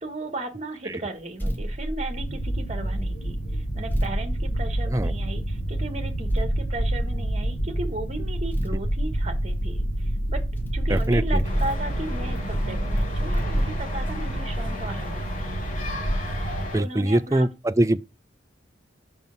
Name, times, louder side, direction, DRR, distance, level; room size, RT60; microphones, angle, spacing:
voice 1, 0.0-10.4 10.7-15.2 16.7-17.5, right 2 dB, 35° right, 1.4 m, -35 dB
sound 1, 1.4-2.9 3.9-5.5 6.3-7.7 8.5-10.1 10.6-15.8, equal, 10° left, 1.7 m, -30 dB
sound 2, 2.1-16.7, right 1 dB, 80° left, 3.4 m, -29 dB
voice 2, 10.9-11.4 16.7-18.0, right 1 dB, 15° right, 0.4 m, -23 dB
sound 3, 11.4-16.8, left 2 dB, 45° left, 4.7 m, -36 dB
5.5 x 5.4 x 5.8 m
head